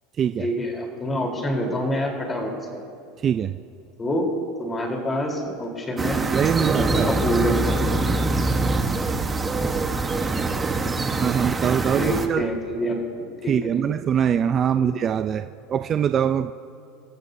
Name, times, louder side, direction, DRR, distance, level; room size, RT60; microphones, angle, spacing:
voice 1, 0.4-2.8 4.0-4.3 4.6-6.2 6.6-7.8 12.0-13.0 13.4-13.7 14.8-14.9, equal, 20° left, 0 dB, 3.7 m, -26 dB
sound 1, 6.0-12.3, right 3 dB, 15° right, 1.2 m, -24 dB
voice 2, 6.3-7.1 11.2-12.5 13.5-16.5, right 8 dB, 35° right, 9 dB, 0.4 m, -23 dB
27.5 x 14.0 x 2.7 m, 2.6 s
supercardioid pair, 125°, 0 cm